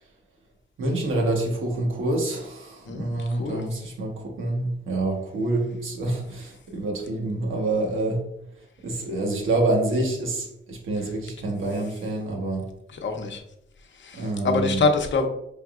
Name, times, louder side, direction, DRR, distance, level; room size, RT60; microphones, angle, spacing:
voice 1, 0.8-8.2 8.8-12.7 14.1-14.8, right 2 dB, 85° right, 1 dB, 1.0 m, -27 dB
voice 2, 2.8-3.7 12.9-13.4 13.9-15.3, left 4 dB, 70° left, 5 dB, 0.7 m, -25 dB
4.5 x 3.4 x 2.4 m, 0.79 s
cardioid pair, 75°, 20 cm